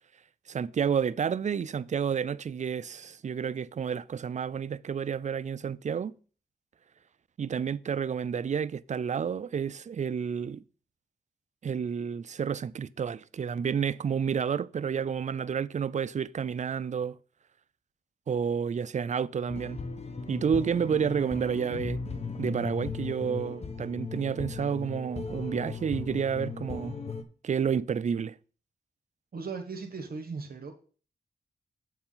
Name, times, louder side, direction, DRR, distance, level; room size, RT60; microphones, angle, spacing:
voice 1, 0.5-6.1 7.4-10.6 11.6-17.2 18.3-19.8 20.3-22.0 22.4-27.0 27.4-28.4, right 7 dB, 45° right, 0.4 m, -30 dB
sound 1, 19.5-27.2, left 4 dB, 40° left, 1.0 m, -37 dB
voice 2, 29.3-30.7, right 4 dB, 60° right, 1.3 m, -37 dB
7.5 x 4.7 x 5.6 m
cardioid pair, 70°, 17 cm